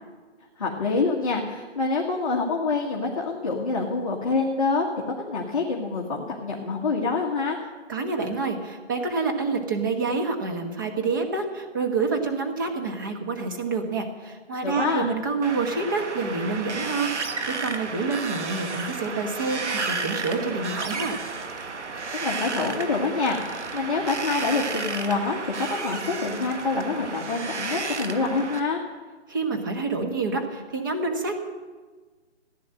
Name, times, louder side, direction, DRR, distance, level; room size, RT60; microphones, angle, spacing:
voice 1, 0.6-4.9 5.3-7.6 14.6-15.1 22.2-28.8, left 4 dB, 30° left, -2 dB, 1.5 m, -26 dB
voice 2, 7.9-21.2 29.3-31.4, right 4 dB, 20° right, 3 dB, 1.1 m, -28 dB
Wind, 15.4-28.6, right 4 dB, 75° right, 1.6 m, -32 dB
15.0 x 10.0 x 7.6 m, 1.4 s
hypercardioid pair, 170°, 35 cm